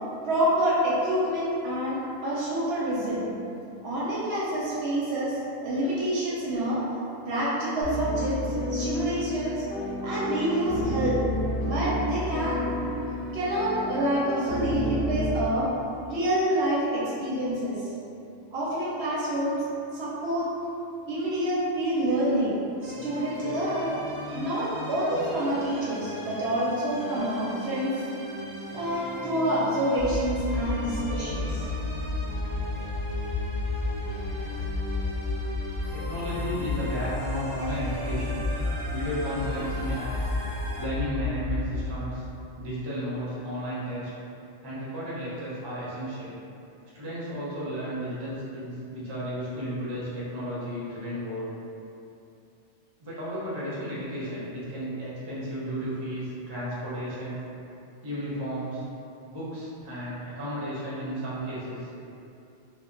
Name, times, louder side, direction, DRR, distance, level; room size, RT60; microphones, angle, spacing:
voice 1, 0.2-3.3 3.8-6.8 7.3-9.6 10.0-11.2 11.6-12.6 13.3-15.7 16.1-17.9 18.5-19.6 19.9-20.5 21.1-23.9 24.3-27.9 28.7-31.6, right 1 dB, 65° right, -8 dB, 0.7 m, -27 dB
sound 1, 7.8-15.4, equal, 55° left, 0.6 m, -31 dB
sound 2, 22.8-40.9, equal, 85° right, 1.0 m, -38 dB
sound 3, 30.0-42.0, left 3 dB, ahead, 1.0 m, -32 dB
voice 2, 35.9-38.4 38.9-40.3 40.8-42.3 42.6-44.1 44.6-46.3 46.9-51.5 53.0-57.4 58.0-58.8 59.3-61.9, equal, 30° right, -9 dB, 0.5 m, -33 dB
2.2 x 2.0 x 3.7 m, 2.7 s
omnidirectional pair, 1.3 m